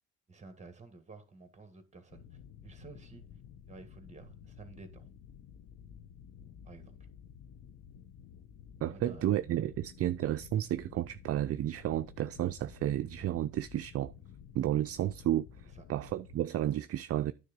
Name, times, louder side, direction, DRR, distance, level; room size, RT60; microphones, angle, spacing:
voice 1, 0.3-3.3 3.7-5.1 6.6-7.0 8.9-9.3 9.7-9.8 15.7-15.8, right 3 dB, 25° right, 1.7 m, -52 dB
sound 1, 2.1-16.4, left 8 dB, 70° left, 0.9 m, -53 dB
voice 2, 8.8-14.1 14.5-15.5 15.9-17.3, right 12 dB, 50° right, 0.4 m, -32 dB
9.6 x 3.6 x 5.2 m
cardioid pair, 90°, 30 cm